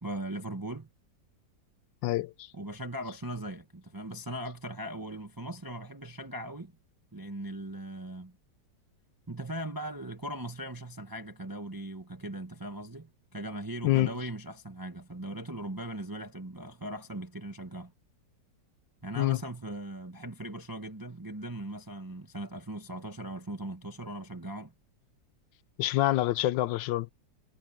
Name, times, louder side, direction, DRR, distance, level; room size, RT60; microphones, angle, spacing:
voice 1, 0.0-0.9 2.5-6.8 7.1-8.4 9.3-17.9 19.0-24.7, right 1 dB, 15° right, 1.2 m, -39 dB
voice 2, 2.0-2.5 13.8-14.1 19.2-19.4 25.8-27.1, left 16 dB, 85° left, 1.3 m, -26 dB
omnidirectional pair, 1.9 m